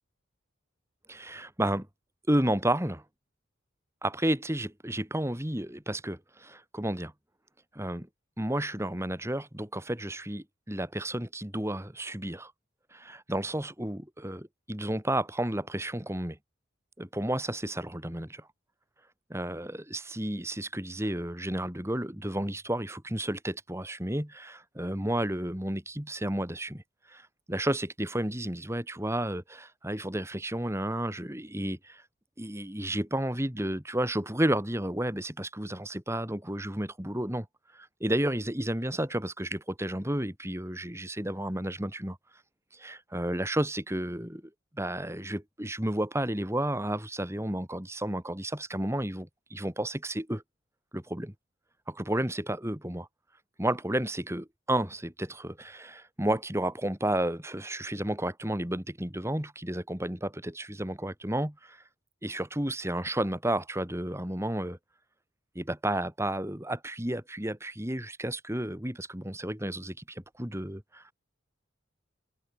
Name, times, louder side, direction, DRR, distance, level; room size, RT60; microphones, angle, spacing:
voice 1, 1.1-1.9 2.3-3.0 4.0-7.1 7.7-8.1 8.4-12.5 12.9-16.4 17.0-18.5 19.3-26.8 27.1-32.0 32.4-37.5 37.7-42.2 42.7-44.4 44.7-50.4 50.9-51.3 51.9-53.1 53.6-61.8 62.2-64.8 65.5-71.0, right 1 dB, 15° right, 2.8 m, -32 dB
head